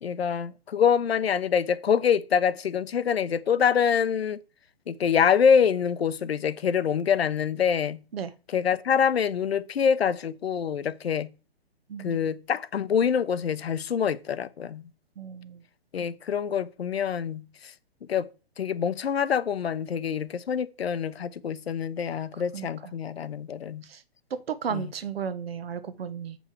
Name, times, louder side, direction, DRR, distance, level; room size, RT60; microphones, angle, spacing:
voice 1, 0.0-4.4 4.9-8.0 8.5-11.3 12.0-14.8 15.9-17.7 18.1-18.3 18.6-23.8 24.7-24.9, left 7 dB, 80° left, 0.8 m, -25 dB
voice 2, 11.9-12.3 15.2-15.6 22.5-22.9 23.8-24.0 24.5-26.4, right 7 dB, 70° right, 1.0 m, -34 dB
7.6 x 5.4 x 4.5 m
hypercardioid pair, 145°, 31 cm